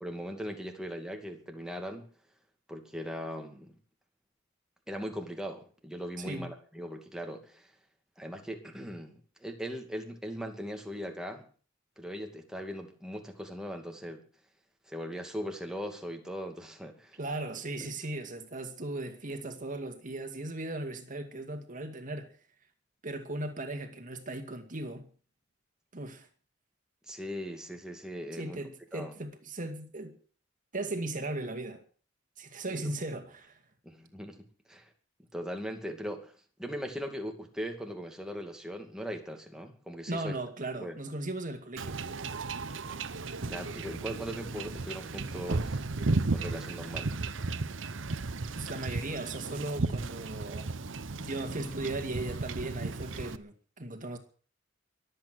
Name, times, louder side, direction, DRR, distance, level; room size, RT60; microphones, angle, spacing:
voice 1, 0.0-2.1 2.7-3.7 4.9-7.7 8.2-11.4 12.0-14.2 14.9-17.2 17.8-17.9 27.1-28.6 28.9-29.1 32.7-32.9 33.8-34.4 34.7-34.9 35.3-36.3 36.6-40.4 40.8-41.0 43.4-45.8 46.3-47.2, equal, 5° right, 2.4 m, -39 dB
voice 2, 17.2-22.4 23.0-25.1 25.9-26.3 28.3-30.2 30.7-31.8 32.4-33.6 40.1-42.0 48.6-50.7 51.2-54.2, right 2 dB, 45° right, 2.2 m, -37 dB
Wind / Ocean / Boat Water vehicle, 41.8-53.4, right 3 dB, 70° right, 0.8 m, -34 dB
23.0 x 8.5 x 6.3 m
head